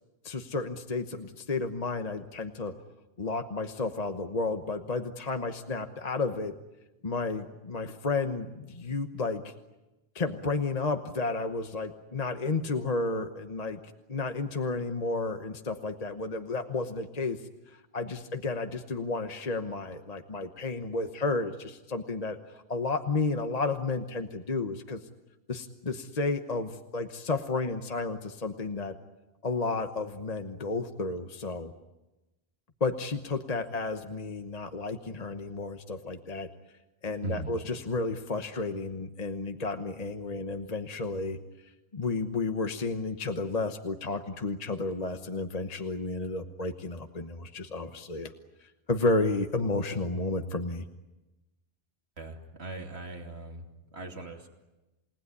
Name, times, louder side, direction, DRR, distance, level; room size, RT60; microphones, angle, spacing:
voice 1, 0.2-2.7 3.2-6.5 7.0-9.5 10.1-13.8 14.1-17.4 17.7-25.0 25.5-29.0 29.4-31.7 32.8-36.5 37.0-41.4 41.9-48.3 48.6-50.8, left 3 dB, 40° left, 6 dB, 1.2 m, -32 dB
voice 2, 37.2-37.6 52.2-53.7 53.9-54.5, right 3 dB, 90° right, 3 dB, 3.0 m, -39 dB
29.0 x 19.0 x 9.7 m, 1.0 s
omnidirectional pair, 1.1 m